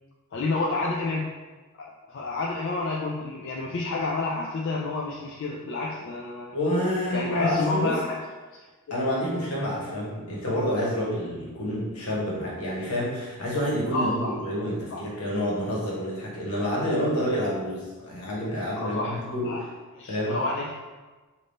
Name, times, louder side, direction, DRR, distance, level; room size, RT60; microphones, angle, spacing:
voice 1, 0.3-1.3 1.8-6.6 7.1-8.2 13.9-14.4 14.9-15.1 18.8-19.7 19.9-20.7, left 3 dB, 55° left, -2 dB, 0.4 m, -29 dB
voice 2, 6.5-8.0 8.9-19.6 20.1-20.4, equal, 85° left, -5 dB, 1.3 m, -28 dB
3.5 x 2.6 x 4.0 m, 1.3 s
head